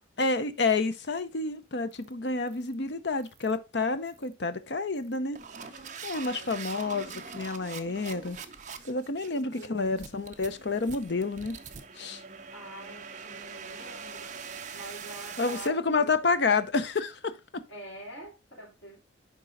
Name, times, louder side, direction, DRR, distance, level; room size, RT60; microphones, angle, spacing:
voice 1, 0.2-5.4 6.0-8.4 8.8-11.6 12.0-12.2 15.4-17.6, left 3 dB, 60° left, 0.7 m, -29 dB
sound 1, 1.9-2.1 2.5-2.7 3.2-3.5 4.1-4.3 5.0-15.7, right 6 dB, 40° right, 0.7 m, -43 dB
voice 2, 6.1-7.0 9.2-10.0 12.5-14.3 14.7-16.6 17.7-19.0, right 1 dB, 90° left, 3.5 m, -47 dB
10.0 x 3.8 x 3.9 m
head